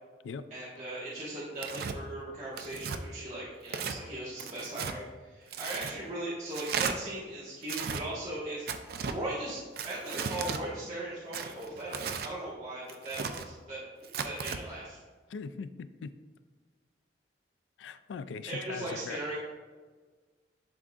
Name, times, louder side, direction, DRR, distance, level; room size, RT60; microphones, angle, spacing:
voice 1, 0.5-15.0 18.4-19.4, right 1 dB, 40° right, -9 dB, 1.3 m, -39 dB
Tearing, 1.6-2.0 2.6-3.0 3.7-4.0 4.4-5.0 5.5-5.9 6.5-6.9 7.6-8.0 8.7-9.2 9.8-10.6 11.3-12.3 12.9-13.5 14.0-14.6, right 6 dB, 55° right, 0.4 m, -35 dB
voice 2, 15.3-16.1 17.8-19.2, left 5 dB, 90° left, 13 dB, 0.3 m, -40 dB
11.0 x 3.7 x 2.4 m, 1.4 s
head